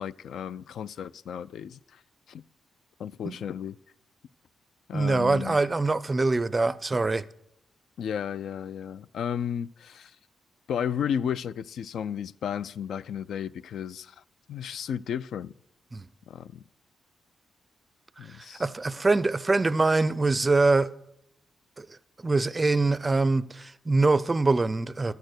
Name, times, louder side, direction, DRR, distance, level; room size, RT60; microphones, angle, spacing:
voice 1, 0.0-2.0 2.3-2.4 3.0-3.8 4.9-5.6 8.0-10.2 10.7-14.2 14.5-15.5 16.3-16.6 18.2-18.6, left 8 dB, 70° left, 0.3 m, -33 dB
voice 2, 4.9-7.2 15.9-16.0 18.6-20.9 21.8-21.9 22.2-25.1, right 3 dB, 20° right, 0.4 m, -24 dB
12.5 x 6.6 x 8.0 m
wide cardioid pair, 165°, 0 cm